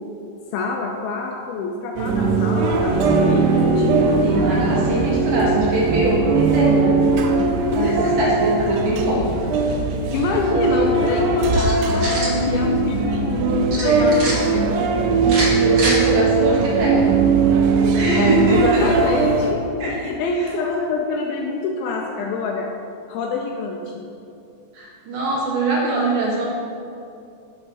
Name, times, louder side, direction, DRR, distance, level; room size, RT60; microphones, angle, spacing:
voice 1, 0.5-4.1 7.8-8.1 10.1-12.1 12.5-14.7 18.2-19.6 19.9-22.7 23.1-24.0, left 4 dB, 85° left, 1 dB, 2.3 m, -26 dB
sound 1, 2.0-19.5, right 4 dB, 90° right, 2.7 m, -19 dB
Bowed string instrument, 2.9-6.2, right 3 dB, 40° left, 1.6 m, -25 dB
voice 2, 4.2-7.0 7.7-9.4 10.7-10.9 15.5-17.0 17.9-18.9 19.8-20.1 20.4-20.5 24.7-26.5, right 1 dB, 70° right, -4 dB, 2.3 m, -22 dB
sound 2, 11.5-12.4 13.7-14.3 15.2-16.0, right 2 dB, 55° right, 1.6 m, -26 dB
6.6 x 4.5 x 6.1 m, 2.5 s
omnidirectional pair, 4.7 m